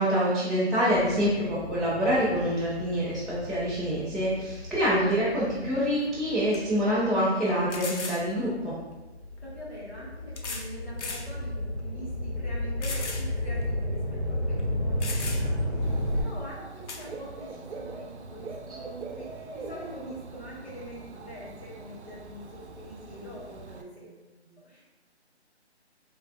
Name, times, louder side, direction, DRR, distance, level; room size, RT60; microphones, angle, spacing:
voice 1, 0.0-8.7, equal, ahead, -12 dB, 0.3 m, -26 dB
sound 1, 0.9-7.6 8.2-16.2, left 1 dB, 45° right, 0.8 m, -33 dB
sound 2, 5.9-6.0 6.5-6.6 7.7-8.2 9.4-9.5 10.4-10.7 11.0-11.3 11.8-11.9 12.8-13.3 13.6-13.7 14.6-14.7 15.0-15.6 16.9-17.1, left 4 dB, 85° left, 0.6 m, -36 dB
voice 2, 9.4-24.8, equal, 55° left, -10 dB, 1.3 m, -44 dB
Dog / Bird, 15.8-23.8, right 3 dB, 70° right, 0.5 m, -43 dB
3.2 x 3.2 x 2.3 m, 1.1 s
figure-of-eight pair, 170°, 34 cm